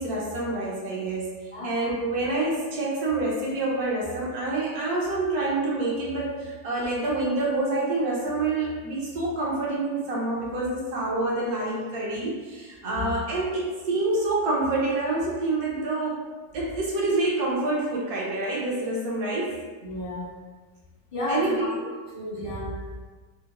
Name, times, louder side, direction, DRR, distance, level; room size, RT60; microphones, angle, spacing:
voice 1, 0.0-1.4 1.6-16.2 16.5-19.5 21.3-21.8, right 2 dB, 65° right, -4 dB, 1.1 m, -27 dB
voice 2, 12.8-13.1 19.8-20.4 21.1-21.7 22.1-22.7, left 1 dB, 55° left, -7 dB, 0.3 m, -32 dB
3.6 x 2.1 x 2.8 m, 1.4 s
omnidirectional pair, 1.9 m